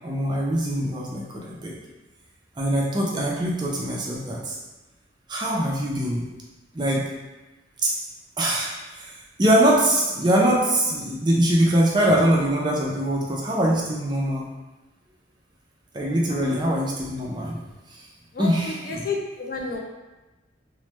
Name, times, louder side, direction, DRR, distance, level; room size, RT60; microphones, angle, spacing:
voice 1, 0.0-1.8 2.6-4.5 5.3-6.2 6.7-7.0 7.8-7.9 8.4-9.1 9.4-14.5 15.9-17.6 18.4-19.0, right 1 dB, 20° right, -4 dB, 0.4 m, -22 dB
voice 2, 16.3-16.6 18.3-19.8, left 3 dB, 50° left, 1 dB, 0.3 m, -31 dB
3.0 x 2.1 x 3.1 m, 1.1 s
head